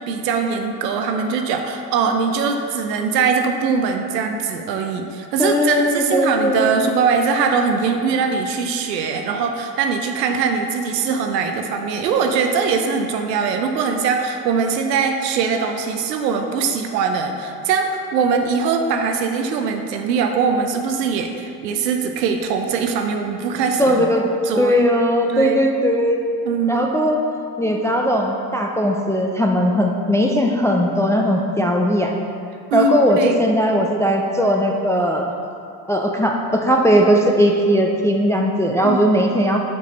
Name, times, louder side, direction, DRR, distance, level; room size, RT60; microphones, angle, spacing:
voice 1, 0.1-24.0 24.4-24.8 25.3-25.6 26.5-26.9 32.7-33.4 38.8-39.0, right 5 dB, 85° right, 4 dB, 0.6 m, -21 dB
voice 2, 5.4-6.7 23.8-24.2 24.6-26.2 26.7-27.2 27.6-32.1 32.7-35.3 35.9-39.6, equal, 5° left, 1 dB, 0.4 m, -18 dB
6.1 x 5.3 x 3.9 m, 2.5 s
hypercardioid pair, 60°, 49 cm